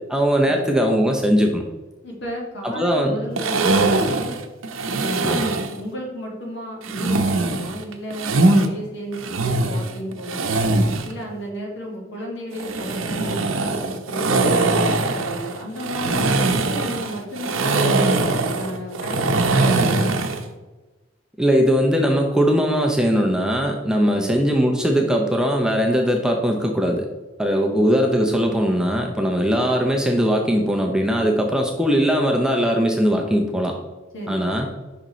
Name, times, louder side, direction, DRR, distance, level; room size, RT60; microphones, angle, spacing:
voice 1, 0.1-1.6 2.6-3.2 5.2-5.5 21.4-27.1 27.4-33.8 34.3-34.7, equal, 5° right, 1 dB, 0.6 m, -20 dB
voice 2, 2.0-4.4 4.9-10.6 11.0-14.3 14.7-18.2 18.5-20.2 24.1-24.3 27.7-27.8 34.1-34.5, equal, 60° left, -1 dB, 1.9 m, -33 dB
sound 1, 3.4-5.8 6.8-8.7 9.1-11.1 12.5-20.4, right 2 dB, 85° right, 0.7 m, -21 dB
6.5 x 5.5 x 3.0 m, 1.2 s
head